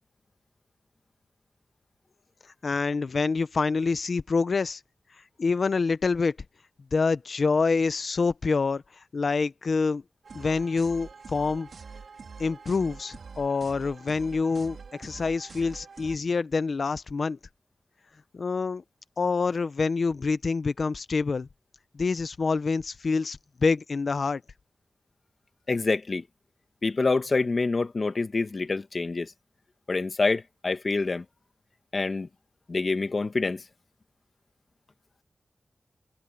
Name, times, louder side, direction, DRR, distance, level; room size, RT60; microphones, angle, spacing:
voice 1, 2.6-4.8 5.4-6.4 6.9-8.8 9.1-10.0 10.3-11.7 12.4-17.4 18.3-18.8 19.2-21.5 21.9-24.4, left 4 dB, 65° left, 0.9 m, -26 dB
sound 1, 10.2-16.2, right 5 dB, 85° right, 4.0 m, -45 dB
voice 2, 25.7-26.2 26.8-29.3 29.9-31.2 31.9-32.3 32.7-33.6, left 3 dB, 45° left, 1.5 m, -26 dB
wide cardioid pair, 115°, 0 cm